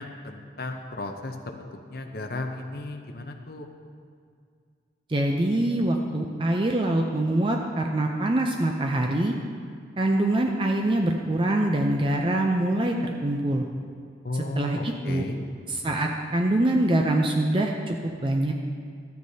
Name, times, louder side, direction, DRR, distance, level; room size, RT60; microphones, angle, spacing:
voice 1, 0.0-3.7 14.2-15.4, left 2 dB, 55° left, 4 dB, 0.7 m, -34 dB
voice 2, 5.1-9.3 10.0-12.9 13.2-13.7 14.3-15.2 15.7-18.5, right 1 dB, 30° right, 2 dB, 0.5 m, -24 dB
13.5 x 9.4 x 2.8 m, 2.2 s
head